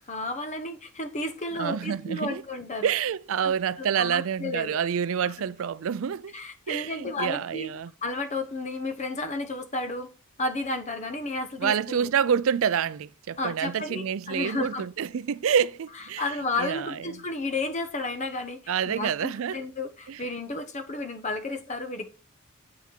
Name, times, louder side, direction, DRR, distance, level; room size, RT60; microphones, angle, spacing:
voice 1, 0.0-2.9 3.4-3.5 3.8-4.8 5.2-5.3 6.3-7.7 8.0-10.1 10.4-12.1 13.4-14.8 16.2-22.1, left 2 dB, 30° left, 1.1 m, -32 dB
voice 2, 1.6-2.4 2.8-6.4 6.7-7.9 11.6-16.3 16.6-17.0 18.7-19.6 20.1-20.2, right 7 dB, 65° right, 0.4 m, -27 dB
8.6 x 5.8 x 4.4 m
head